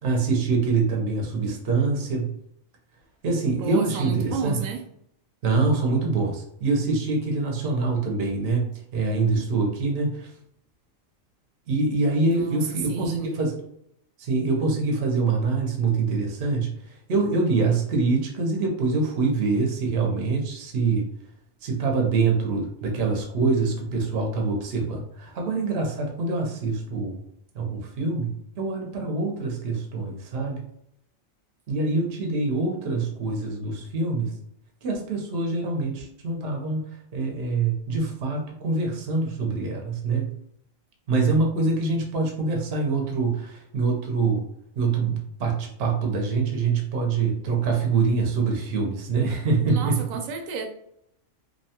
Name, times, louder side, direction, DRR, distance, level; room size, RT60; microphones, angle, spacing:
voice 1, 0.0-2.4 3.2-4.6 5.4-10.3 11.7-13.5 14.2-16.7 17.1-21.1 21.6-27.2 27.5-30.6 31.7-34.3 34.8-40.3 41.1-44.4 44.8-50.0, right 4 dB, 55° right, 0.9 m, -25 dB
voice 2, 3.6-4.8 12.3-13.3 49.7-50.7, right 5 dB, 80° right, 1.0 m, -31 dB
2.8 x 2.2 x 2.8 m
omnidirectional pair, 1.4 m